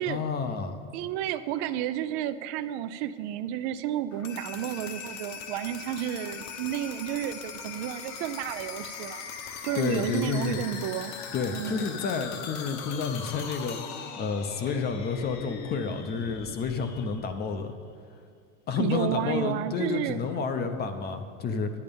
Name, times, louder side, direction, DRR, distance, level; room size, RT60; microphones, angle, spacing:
voice 1, 0.1-0.8 9.7-10.6 11.3-17.7 18.7-21.7, left 5 dB, 25° left, 8 dB, 0.6 m, -30 dB
voice 2, 0.9-9.3 9.6-11.2 11.5-12.0 18.8-20.2, right 11 dB, 55° right, 12 dB, 0.5 m, -31 dB
sound 1, 4.1-17.9, left 6 dB, 45° left, 0.9 m, -40 dB
11.0 x 9.7 x 5.3 m, 2.2 s
supercardioid pair, 150°, 40 cm